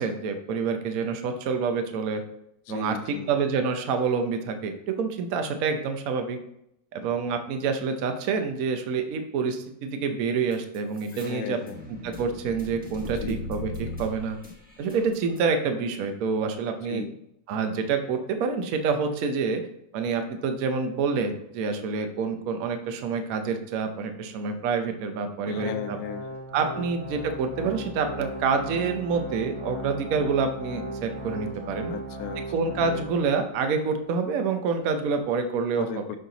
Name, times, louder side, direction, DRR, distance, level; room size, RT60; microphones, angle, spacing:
voice 1, 0.0-2.2 2.7-6.4 6.9-11.6 12.0-14.4 14.8-17.0 17.5-19.6 19.9-26.0 26.5-31.9 32.5-35.9, right 5 dB, 60° right, 6 dB, 1.0 m, -27 dB
voice 2, 2.7-3.3 11.1-11.8 13.0-13.5 16.7-17.1 25.4-26.4 26.7-26.9 31.9-32.5 35.8-36.2, left 9 dB, 75° left, 8 dB, 0.8 m, -36 dB
sound 1, 10.5-15.4, left 2 dB, 5° right, 0.7 m, -39 dB
Organ, 25.5-33.5 33.9-34.0 34.7-34.8, right 1 dB, 45° right, 2.7 m, -37 dB
6.5 x 4.3 x 4.0 m, 0.77 s
omnidirectional pair, 2.0 m